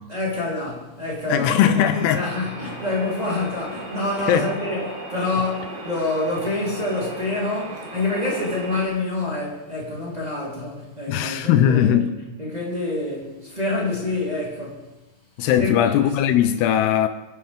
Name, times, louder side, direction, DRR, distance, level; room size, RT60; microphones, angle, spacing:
voice 1, 0.1-1.8 2.1-12.1 12.4-14.9 15.6-15.9, left 2 dB, 10° right, 3.3 m, -27 dB
voice 2, 1.3-2.2 4.3-4.5 11.1-12.1 15.4-17.1, left 10 dB, 80° left, 2.7 m, -19 dB
sound 1, 1.7-8.9, right 2 dB, 85° right, 4.6 m, -36 dB
27.0 x 10.5 x 3.6 m
omnidirectional pair, 4.8 m